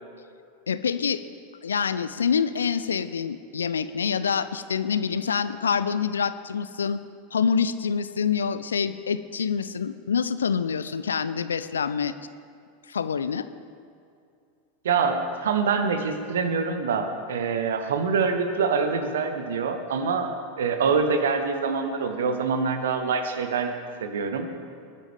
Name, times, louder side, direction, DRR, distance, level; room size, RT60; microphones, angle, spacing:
voice 1, 0.7-1.2 1.6-7.0 7.3-12.1 12.9-13.5, left 6 dB, 75° left, 14 dB, 0.5 m, -26 dB
voice 2, 14.8-23.7 24.0-24.5, right 5 dB, 65° right, 7 dB, 1.1 m, -25 dB
20.0 x 9.9 x 3.5 m, 2.4 s
figure-of-eight pair, 85°, 0 cm